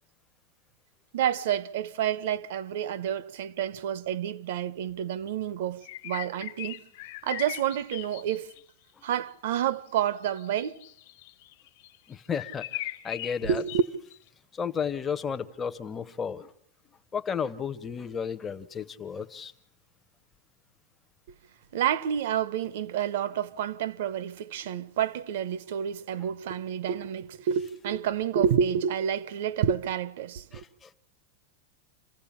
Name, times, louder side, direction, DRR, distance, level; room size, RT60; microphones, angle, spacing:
voice 1, 1.1-6.8 7.2-8.5 9.0-10.7 13.4-13.8 21.7-30.6, right 9 dB, 55° right, 1.0 m, -29 dB
sound 1, 5.8-8.6 10.2-12.0 12.3-14.2, left 15 dB, 50° left, 1.2 m, -39 dB
voice 2, 12.1-12.7 13.0-13.6 14.5-16.5 17.1-19.5 30.5-30.9, left 6 dB, 10° left, 0.8 m, -33 dB
27.5 x 15.5 x 8.6 m
supercardioid pair, 175°, 0 cm